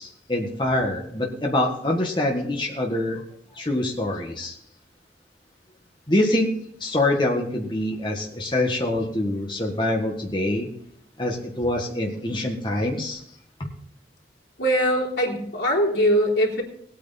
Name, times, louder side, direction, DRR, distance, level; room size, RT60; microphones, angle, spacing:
voice 1, 0.0-3.2 3.5-4.6 6.1-6.5 6.8-10.7 11.2-13.2 13.6-13.7, left 1 dB, 25° left, 0 dB, 1.7 m, -25 dB
voice 2, 14.6-16.6, equal, 85° left, -1 dB, 3.6 m, -22 dB
19.5 x 9.0 x 4.2 m, 0.70 s
head